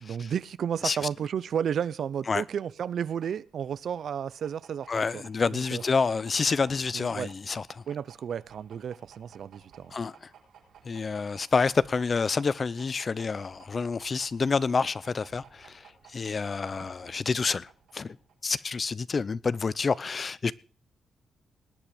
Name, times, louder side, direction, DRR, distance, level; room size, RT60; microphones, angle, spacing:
voice 1, 0.0-5.2 5.5-5.8 6.9-7.3 7.9-9.9, right 8 dB, 70° right, 0.6 m, -32 dB
sound 1, 2.5-18.5, right 7 dB, 85° right, 5.2 m, -56 dB
voice 2, 4.9-7.8 9.9-10.3 10.8-18.2 18.4-20.5, left 4 dB, 40° left, 0.6 m, -28 dB
19.5 x 9.0 x 5.0 m
cardioid pair, 100°, 0 cm